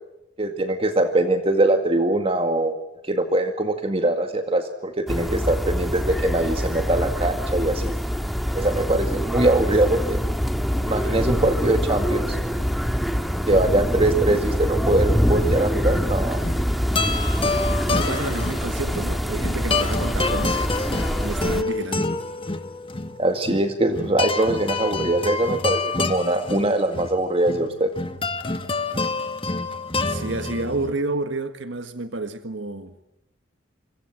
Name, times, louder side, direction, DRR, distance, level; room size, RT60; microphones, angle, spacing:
voice 1, 0.4-2.8 3.0-7.9 8.5-10.2 10.8-12.4 13.5-16.4 23.2-27.9, right 1 dB, 30° right, 2.0 m, -22 dB
sound 1, 5.1-21.6, equal, ahead, 1.9 m, -25 dB
sound 2, 15.3-30.9, left 3 dB, 30° left, 1.9 m, -28 dB
voice 2, 17.9-20.7 21.2-22.1 30.1-32.9, right 2 dB, 85° right, 1.7 m, -30 dB
28.0 x 25.0 x 7.7 m
head